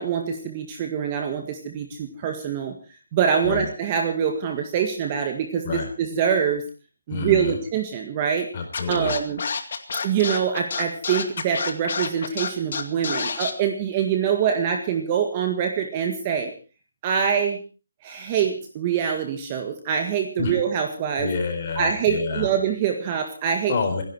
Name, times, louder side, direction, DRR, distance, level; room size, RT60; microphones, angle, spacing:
voice 1, 0.0-2.7 3.1-6.6 7.1-8.5 8.9-9.4 10.0-16.5 17.0-17.6 18.0-21.3 21.8-23.7, right 8 dB, 20° right, 4 dB, 1.8 m, -24 dB
voice 2, 7.1-7.6 8.5-9.1 20.4-20.6 21.2-22.5 23.7-24.0, left 4 dB, 30° left, 4 dB, 4.2 m, -28 dB
Scratching (performance technique), 8.7-13.5, left 5 dB, 45° left, 2.2 m, -28 dB
27.0 x 11.0 x 4.6 m, 0.36 s
hypercardioid pair, 175°, 0 cm